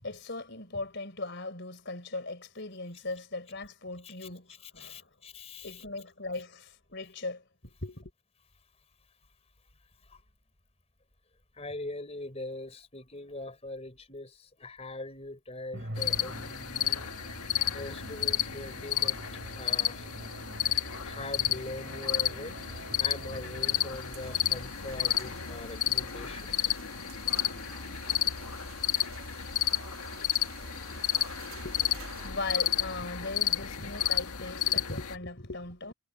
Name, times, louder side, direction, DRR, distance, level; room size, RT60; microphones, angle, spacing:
voice 1, 0.0-5.0 5.6-8.1 31.6-35.9, left 2 dB, 50° left, 4.3 m, -39 dB
voice 2, 4.6-5.8 10.1-10.2 11.6-17.1 17.4-19.2 19.6-20.1 21.0-26.7 27.5-27.6 29.7-29.8, left 2 dB, 30° left, 4.0 m, -42 dB
Musical instrument, 15.7-24.3, right 1 dB, 55° right, 3.6 m, -46 dB
sound 1, 16.0-35.2, left 10 dB, 90° left, 1.7 m, -31 dB
sound 2, 23.9-32.3, right 5 dB, 75° right, 3.1 m, -50 dB
head